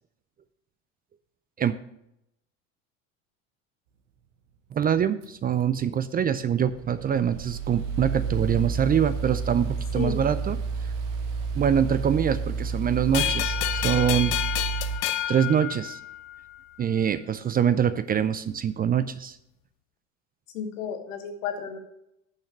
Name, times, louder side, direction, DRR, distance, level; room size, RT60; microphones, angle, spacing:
voice 1, 4.7-10.6 11.6-14.4 15.3-16.0 16.8-19.4, right 8 dB, 25° right, 14 dB, 0.4 m, -24 dB
sound 1, 5.2-15.0, right 5 dB, 75° right, 1.2 m, -31 dB
sound 2, 13.1-16.4, left 12 dB, 65° left, 0.7 m, -29 dB
voice 2, 20.5-21.8, left 8 dB, 80° left, 6 dB, 1.4 m, -32 dB
6.6 x 5.8 x 7.0 m, 0.80 s
hypercardioid pair, 75°, 38 cm